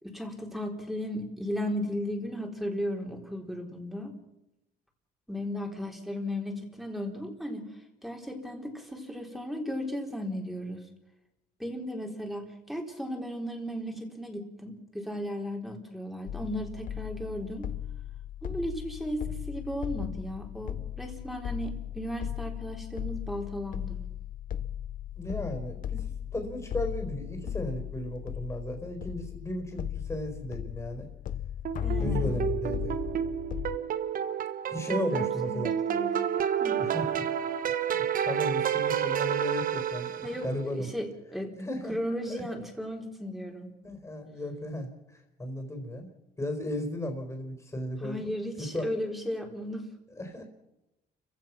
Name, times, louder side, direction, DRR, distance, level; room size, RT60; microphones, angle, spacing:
voice 1, 0.0-4.1 5.3-7.7 8.0-10.8 11.6-17.7 18.4-24.0 31.8-32.4 34.9-36.1 36.6-36.8 40.2-41.5 41.9-43.7 48.0-49.9, equal, ahead, 2 dB, 4.0 m, -35 dB
sound 1, 16.3-33.8, left 10 dB, 55° left, 1.0 m, -36 dB
voice 2, 25.2-31.1 32.0-33.0 34.7-35.7 36.8-37.3 37.9-40.9 41.6-42.0 42.3-42.5 43.8-44.9 45.4-46.1 46.4-48.9 50.1-50.4, left 1 dB, 15° left, 3 dB, 4.3 m, -35 dB
sound 2, 31.6-40.5, right 9 dB, 55° right, 1.3 m, -30 dB
29.5 x 16.0 x 6.0 m, 0.92 s
cardioid pair, 110°, 17 cm